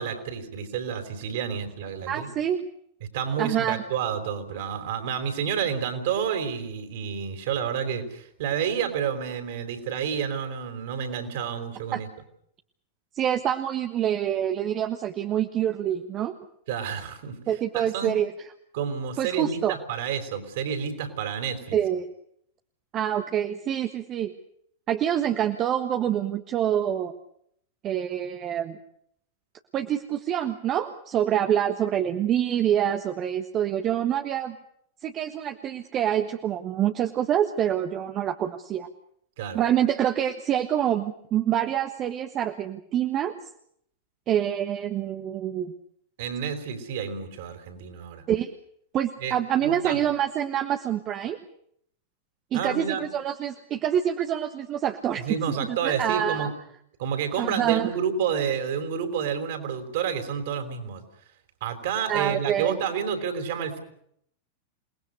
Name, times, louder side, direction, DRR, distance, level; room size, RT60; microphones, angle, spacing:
voice 1, 0.0-2.3 3.1-12.1 16.7-17.4 17.7-18.1 18.7-21.8 39.4-39.6 46.2-48.2 49.2-49.3 49.6-50.0 52.5-53.0 55.2-56.5 57.0-61.0 61.6-63.8, right 7 dB, 55° right, 7 dB, 4.6 m, -29 dB
voice 2, 2.1-2.6 3.4-3.8 11.9-12.0 13.1-16.4 17.5-18.3 19.2-19.7 21.7-22.0 22.9-24.3 24.9-27.1 27.8-28.8 29.7-34.6 35.0-38.9 39.5-43.4 44.3-45.7 48.3-48.5 48.9-51.4 52.5-55.3 55.6-56.5 57.4-57.9 62.1-62.8, right 10 dB, 30° right, 7 dB, 1.4 m, -26 dB
28.5 x 20.0 x 6.7 m, 0.69 s
figure-of-eight pair, 90°, 0 cm